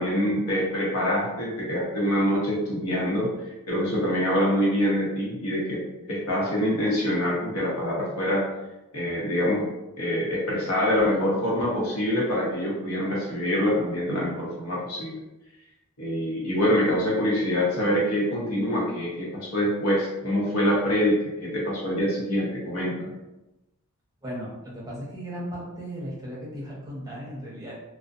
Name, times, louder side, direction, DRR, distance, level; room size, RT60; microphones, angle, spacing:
voice 1, 0.0-3.3 3.7-5.8 6.1-8.5 8.9-9.7 10.0-15.2 16.0-23.2, equal, 85° left, -4 dB, 0.9 m, -25 dB
voice 2, 24.2-27.7, equal, 15° right, -6 dB, 0.7 m, -36 dB
2.4 x 2.1 x 2.5 m, 0.96 s
head